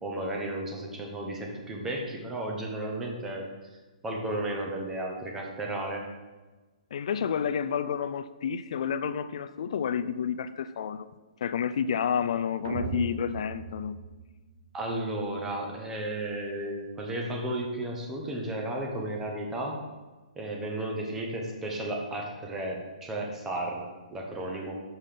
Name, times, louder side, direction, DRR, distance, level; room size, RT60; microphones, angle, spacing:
voice 1, 0.0-3.5 4.0-6.0 14.7-19.9 20.4-24.8, right 1 dB, 10° right, 1 dB, 0.8 m, -33 dB
voice 2, 6.9-11.1 11.4-14.0, left 7 dB, 50° left, 12 dB, 0.3 m, -30 dB
sound 1, 12.6-14.9, right 6 dB, 40° right, 0.5 m, -37 dB
6.7 x 5.3 x 5.7 m, 1.2 s
hypercardioid pair, 175°, 4 cm